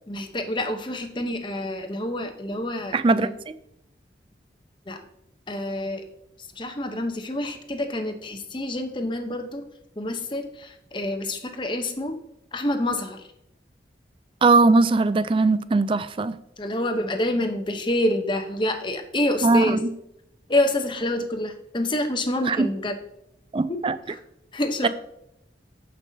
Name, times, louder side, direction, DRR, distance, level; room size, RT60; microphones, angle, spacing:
voice 1, 0.1-3.4 4.9-5.0 5.5-6.0 6.6-9.6 10.0-12.2 12.5-13.2 16.6-19.8 20.5-22.9 24.1-24.2 24.5-24.9, left 1 dB, 25° left, 0.8 m, -27 dB
voice 2, 2.9-3.5 14.4-16.4 19.4-19.9 22.5-22.7 23.5-24.0 24.8-24.9, right 3 dB, 30° right, 0.3 m, -20 dB
14.5 x 5.4 x 2.7 m
head